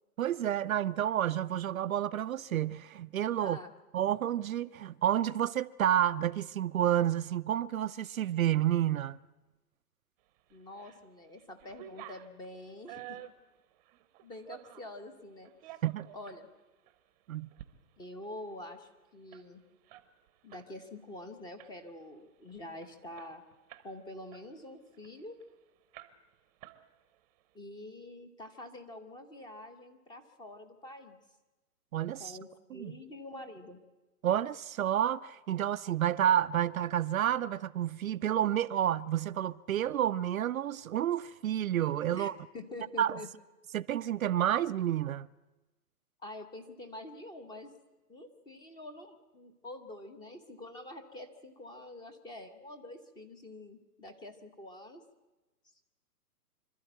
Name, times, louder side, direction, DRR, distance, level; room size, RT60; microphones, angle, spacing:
voice 1, 0.2-3.6 3.9-9.2 15.8-16.1 17.3-17.5 31.9-32.4 32.7-33.0 34.2-42.4 43.0-43.2 43.7-45.3, right 11 dB, 60° right, 0.6 m, -30 dB
voice 2, 3.4-3.7 10.5-13.2 14.2-15.5 16.1-16.5 18.0-19.6 20.4-23.4 23.8-25.4 27.5-31.2 32.2-33.8 42.1-43.3 46.2-47.7 48.1-55.0, left 1 dB, 10° left, 1.0 m, -46 dB
sound 1, 10.5-11.0 11.4-14.9 15.4-16.4 16.9-17.0 17.4-17.7 18.0-18.1 18.4-20.7 21.0-21.2 21.6-22.0 22.5-22.6 22.8-23.9 24.3-25.5 25.9-26.3 26.6-27.2, right 13 dB, 25° right, 0.9 m, -51 dB
26.0 x 12.5 x 9.1 m
hypercardioid pair, 145°, 48 cm